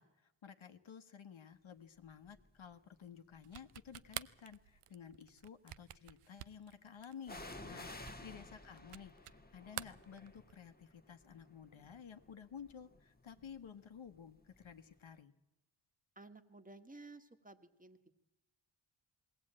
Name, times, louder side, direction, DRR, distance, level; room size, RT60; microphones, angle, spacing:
voice 1, 0.0-7.4 7.6-15.3, left 7 dB, 65° left, 8 dB, 1.3 m, -53 dB
sound 1, 2.3-2.6 3.4-4.3 7.2-14.9 15.1-15.2, left 2 dB, 20° left, 1.4 m, -54 dB
sound 2, 3.4-9.4 9.7-10.7, right 12 dB, 85° right, 0.7 m, -49 dB
voice 2, 16.1-18.1, right 2 dB, 15° right, 8 dB, 1.6 m, -56 dB
20.5 x 17.5 x 8.7 m, 0.97 s
cardioid pair, 80°, 50 cm